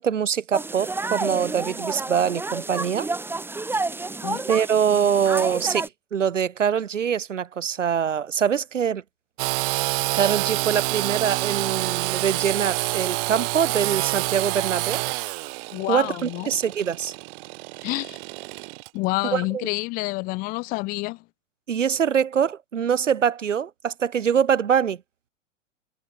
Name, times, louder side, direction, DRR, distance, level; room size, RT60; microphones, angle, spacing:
voice 1, 0.0-3.1 4.5-9.0 10.1-15.0 15.9-17.1 19.3-19.6 21.7-25.0, right 8 dB, 75° right, 1.2 m, -24 dB
sound 1, 0.5-5.9, right 3 dB, 5° right, 1.3 m, -30 dB
Engine / Sawing, 9.4-18.9, right 26 dB, 45° right, 2.3 m, -27 dB
voice 2, 15.7-16.5 17.8-18.2 18.9-21.2, left 24 dB, 25° left, 0.5 m, -28 dB
figure-of-eight pair, 95°, 37 cm